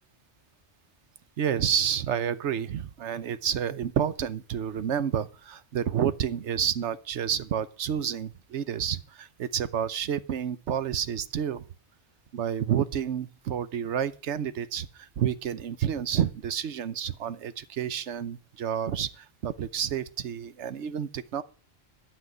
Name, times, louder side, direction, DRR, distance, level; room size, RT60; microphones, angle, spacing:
voice 1, 1.4-11.6 12.3-21.4, right 9 dB, 85° right, 1.1 m, -29 dB
11.5 x 6.0 x 9.1 m
omnidirectional pair, 1.1 m